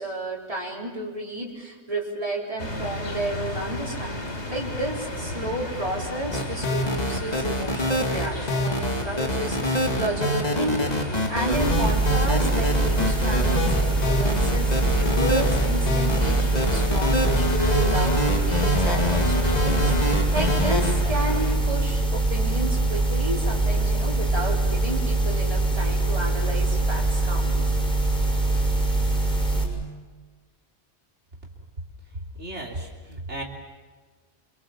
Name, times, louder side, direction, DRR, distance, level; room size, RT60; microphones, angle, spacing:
voice 1, 0.0-27.7, right 1 dB, 30° right, -2 dB, 4.3 m, -31 dB
sound 1, 2.6-21.6, left 1 dB, 85° left, 3.4 m, -34 dB
sound 2, 6.3-20.9, left 1 dB, 35° left, 2.6 m, -25 dB
sound 3, 11.5-29.6, right 2 dB, 5° left, 5.6 m, -23 dB
voice 2, 32.1-33.4, right 1 dB, 90° right, -1 dB, 3.6 m, -35 dB
27.5 x 24.0 x 7.3 m, 1.4 s
omnidirectional pair, 1.1 m